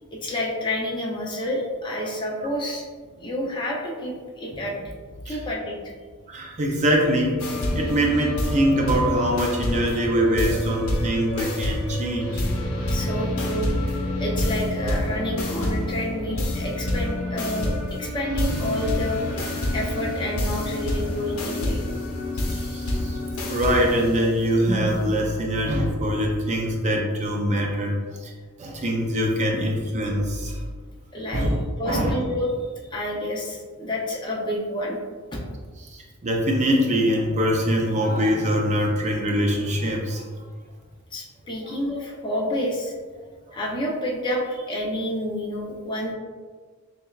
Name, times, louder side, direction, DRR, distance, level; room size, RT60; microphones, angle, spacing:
voice 1, 0.1-2.9 3.2-4.8 5.2-5.8 12.8-13.8 14.2-19.2 19.7-21.8 31.1-31.5 31.8-32.5 32.9-35.0 35.3-35.4 41.1-42.9 43.5-46.1, left 1 dB, 20° left, -3 dB, 0.6 m, -29 dB
voice 2, 6.3-12.4 22.3-23.2 23.5-28.3 28.6-30.6 31.3-31.6 31.8-32.2 35.8-40.2 41.6-41.8 43.5-43.6, equal, 30° right, 0 dB, 0.4 m, -23 dB
sound 1, 7.4-25.3, left 1 dB, 70° left, 0.7 m, -28 dB
6.7 x 2.2 x 2.4 m, 1.5 s
head